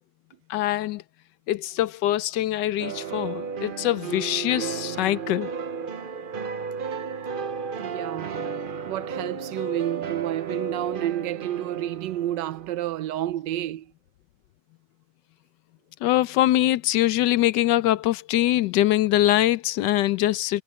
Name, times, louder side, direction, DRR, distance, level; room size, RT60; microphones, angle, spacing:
voice 1, 0.5-1.0 1.5-5.5 16.0-20.6, left 14 dB, 75° left, 1.2 m, -23 dB
sound 1, 2.8-12.7, right 6 dB, 55° right, 0.6 m, -33 dB
voice 2, 7.8-13.9, right 13 dB, 75° right, 1.3 m, -30 dB
omnidirectional pair, 1.9 m